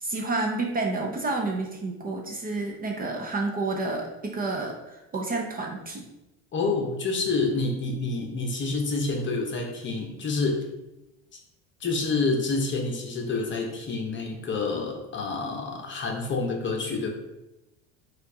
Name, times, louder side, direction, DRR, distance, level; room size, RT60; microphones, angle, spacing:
voice 1, 0.0-6.0, right 3 dB, 25° right, 1 dB, 0.6 m, -30 dB
voice 2, 6.5-10.7 11.8-17.1, left 3 dB, 30° left, 2 dB, 0.9 m, -28 dB
4.4 x 2.5 x 4.6 m, 0.96 s
supercardioid pair, 110°, 37 cm